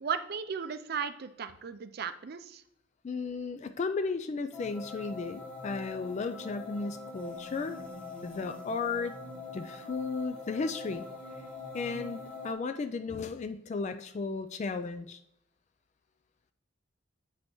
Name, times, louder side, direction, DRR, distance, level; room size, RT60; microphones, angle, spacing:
voice 1, 0.0-2.6, right 6 dB, 50° right, 11 dB, 0.5 m, -36 dB
voice 2, 3.0-7.8 8.2-9.1 9.5-11.1 11.7-15.2, left 4 dB, 35° left, 10 dB, 0.3 m, -34 dB
sound 1, 4.5-12.5, left 3 dB, 5° left, 0.9 m, -43 dB
8.3 x 5.2 x 3.0 m, 0.78 s
head